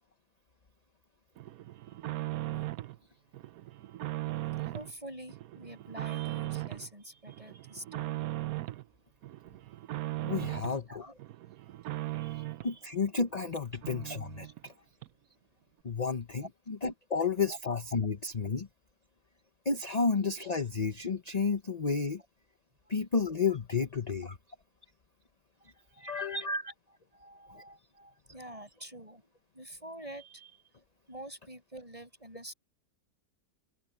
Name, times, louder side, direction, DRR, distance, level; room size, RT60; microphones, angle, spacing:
sound 1, 1.4-3.0 3.3-4.9 5.3-6.9 7.3-8.8 9.2-10.8 11.2-12.8 13.2-13.3 13.6-13.7 13.8-14.7 15.0-15.1, right 16 dB, 70° right, 1.1 m, -38 dB
voice 1, 4.6-8.2 10.4-11.1 12.1-12.8 14.4-14.5 16.4-16.5 17.5-17.6 22.9-23.0 25.6-26.7 27.1-30.6 31.1-32.5, right 1 dB, 20° right, 7.6 m, -45 dB
voice 2, 10.2-11.0 12.6-14.7 15.8-18.7 19.6-22.2 22.9-24.4 25.6-25.7 26.0-26.4 27.5-27.6, left 5 dB, 30° left, 0.9 m, -31 dB
open air
omnidirectional pair, 1.6 m